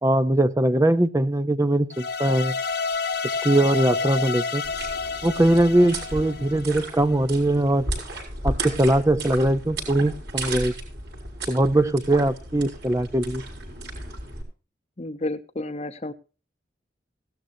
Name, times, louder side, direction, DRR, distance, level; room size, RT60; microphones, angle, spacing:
voice 1, 0.0-2.5 3.4-4.6 5.2-7.8 8.4-10.7 11.5-13.4, right 1 dB, 15° right, 12 dB, 0.5 m, -21 dB
sound 1, 1.9-7.1, left 4 dB, 55° left, 1.0 m, -29 dB
sound 2, 4.6-14.4, right 2 dB, 65° right, 6.1 m, -34 dB
voice 2, 15.0-16.1, left 2 dB, 35° left, 13 dB, 0.8 m, -31 dB
17.0 x 13.0 x 2.7 m, 0.34 s
head